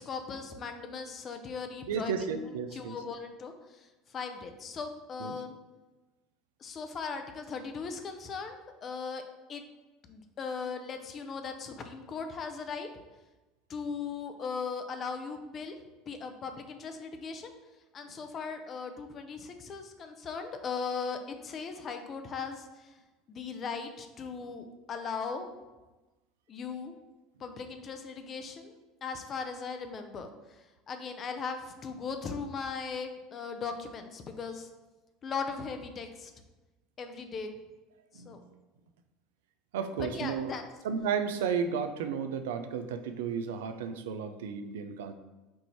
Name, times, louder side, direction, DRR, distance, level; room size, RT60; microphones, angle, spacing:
voice 1, 0.0-5.5 6.6-9.2 9.5-9.6 10.0-12.9 13.7-15.8 16.1-17.5 17.9-23.0 23.3-25.5 26.5-26.9 27.4-28.8 29.0-34.7 35.2-36.3 37.0-37.5 38.1-38.4 40.0-40.6, left 5 dB, 40° left, 6 dB, 0.6 m, -38 dB
voice 2, 1.9-3.0 5.2-5.3 38.1-38.4 39.7-40.5 40.8-45.1, right 6 dB, 80° right, 8 dB, 0.4 m, -33 dB
4.5 x 2.6 x 4.4 m, 1.1 s
hypercardioid pair, 80°, 0 cm